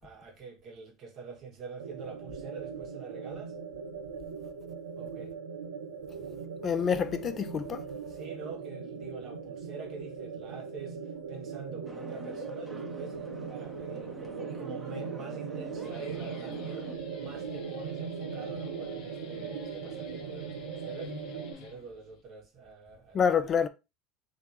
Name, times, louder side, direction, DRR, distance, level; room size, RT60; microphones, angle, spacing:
voice 1, 0.0-3.5 5.0-5.3 8.1-13.2 13.5-16.9 17.2-23.2, right 4 dB, 50° right, 1.7 m, -45 dB
sound 1, 1.8-21.5, right 6 dB, 90° right, 0.7 m, -39 dB
voice 2, 6.6-7.8 23.1-23.7, left 7 dB, 40° left, 0.5 m, -27 dB
sound 2, 11.9-17.0, equal, 10° right, 1.1 m, -47 dB
Guitar, 15.6-22.2, left 6 dB, 60° left, 1.1 m, -50 dB
3.7 x 2.9 x 4.8 m
hypercardioid pair, 85°, 0 cm